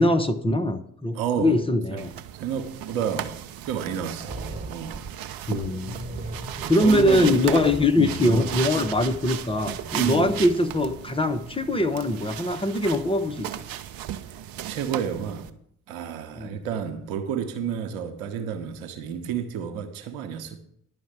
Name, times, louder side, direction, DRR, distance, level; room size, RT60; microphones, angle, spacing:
voice 1, 0.0-2.1 5.5-6.0 6.7-13.6 16.4-16.6, left 1 dB, 10° left, 1.0 m, -22 dB
voice 2, 1.1-1.6 1.9-2.0 2.3-3.4 3.6-5.1 6.8-7.4 8.0-8.5 9.9-10.4 14.3-14.4 14.7-15.5 15.9-20.6, right 8 dB, 70° right, 1.1 m, -30 dB
sound 1, 2.0-15.5, right 11 dB, 55° right, 0.9 m, -36 dB
sound 2, 4.3-11.0, right 3 dB, 20° right, 1.8 m, -39 dB
11.0 x 5.2 x 8.2 m
figure-of-eight pair, 45°, 43 cm